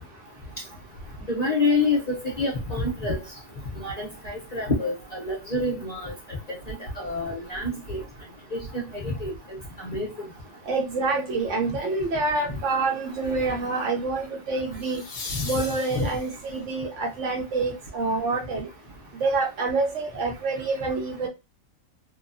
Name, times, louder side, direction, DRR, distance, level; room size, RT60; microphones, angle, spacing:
voice 1, 1.3-3.2 3.8-6.1 6.5-8.0 8.5-9.3 9.8-10.1 15.9-16.1, left 3 dB, 35° left, -3 dB, 0.7 m, -27 dB
voice 2, 10.7-15.0 15.4-18.7 19.2-21.3, right 3 dB, 65° right, 1 dB, 0.9 m, -27 dB
sound 1, 11.7-12.0 14.7-16.6 19.5-19.6, left 4 dB, 60° left, 1.0 m, -38 dB
2.7 x 2.2 x 2.6 m, 0.25 s
omnidirectional pair, 1.5 m